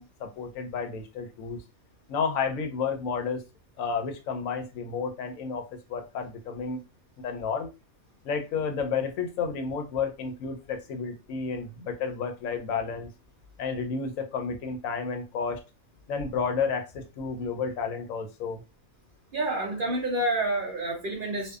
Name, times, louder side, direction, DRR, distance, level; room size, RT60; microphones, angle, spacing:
voice 1, 0.0-1.6 2.1-3.4 3.8-6.8 7.2-7.7 8.2-13.1 13.6-15.6 16.1-18.6, left 5 dB, 80° left, 6 dB, 1.0 m, -31 dB
voice 2, 19.3-21.6, right 2 dB, 55° right, 0 dB, 0.6 m, -28 dB
2.6 x 2.1 x 2.3 m, 0.28 s
omnidirectional pair, 1.4 m